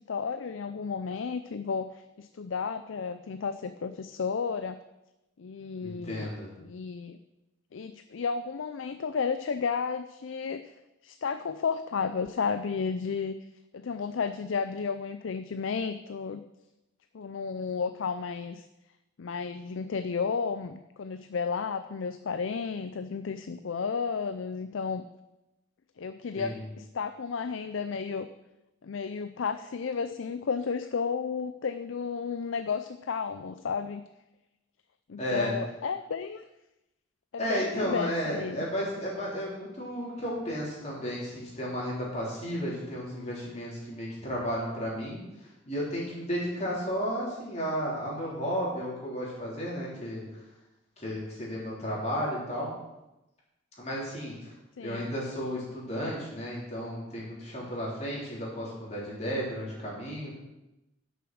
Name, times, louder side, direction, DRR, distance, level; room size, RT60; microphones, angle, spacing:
voice 1, 0.1-4.8 5.4-6.3 6.6-7.2 7.7-10.7 11.0-13.3 13.7-16.4 17.1-18.6 19.2-25.0 26.0-28.3 28.8-34.0 35.1-36.5 37.3-38.6 54.8-55.1, left 5 dB, 80° left, 10 dB, 0.5 m, -32 dB
voice 2, 5.8-6.5 26.3-26.7 35.2-35.6 37.4-50.2 51.0-52.7 53.8-54.5 54.8-60.4, equal, 35° left, -5 dB, 4.0 m, -33 dB
11.0 x 6.7 x 6.3 m, 0.96 s
head